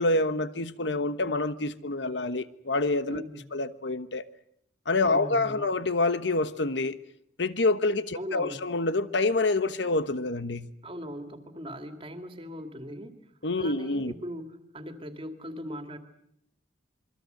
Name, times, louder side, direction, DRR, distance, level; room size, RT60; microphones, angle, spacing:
voice 1, 0.0-3.2 3.5-4.3 4.9-7.0 7.4-10.7 13.4-14.1, left 2 dB, 70° left, 1.2 m, -27 dB
voice 2, 3.1-3.6 5.0-5.7 8.1-8.6 10.8-13.1 13.6-16.0, equal, 30° right, 2.3 m, -39 dB
27.0 x 23.0 x 7.9 m
head